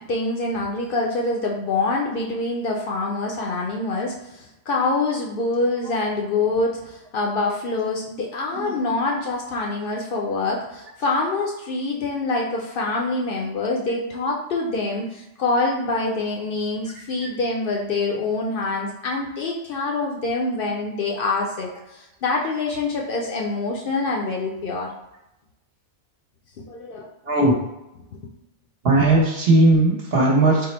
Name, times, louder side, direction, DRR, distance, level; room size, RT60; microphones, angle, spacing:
voice 1, 0.0-24.9 26.7-27.1, left 3 dB, 60° left, -1 dB, 0.6 m, -25 dB
voice 2, 8.5-8.9 27.2-27.5 28.8-30.7, right 2 dB, 60° right, -2 dB, 1.1 m, -18 dB
3.6 x 2.0 x 4.2 m, 0.91 s
omnidirectional pair, 1.2 m